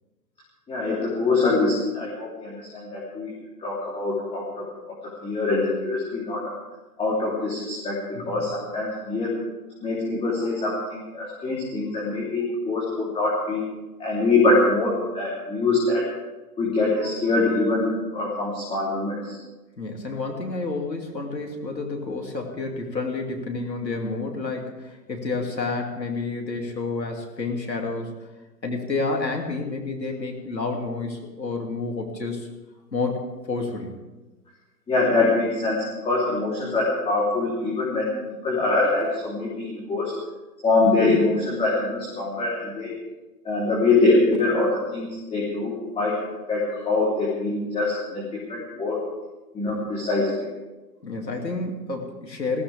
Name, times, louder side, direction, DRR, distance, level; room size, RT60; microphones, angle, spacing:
voice 1, 0.7-3.3 3.6-4.7 5.2-6.5 7.0-9.3 9.8-13.6 14.0-16.0 16.6-19.4 34.9-38.1 38.4-40.1 40.6-42.9 43.4-46.2 46.5-49.0 49.5-50.4, left 3 dB, 10° left, -7 dB, 3.7 m, -24 dB
voice 2, 19.8-28.1 28.6-32.5 32.9-34.0 51.0-52.6, left 3 dB, 85° left, 2 dB, 3.1 m, -29 dB
21.0 x 15.5 x 3.6 m, 1.1 s
figure-of-eight pair, 120°, 49 cm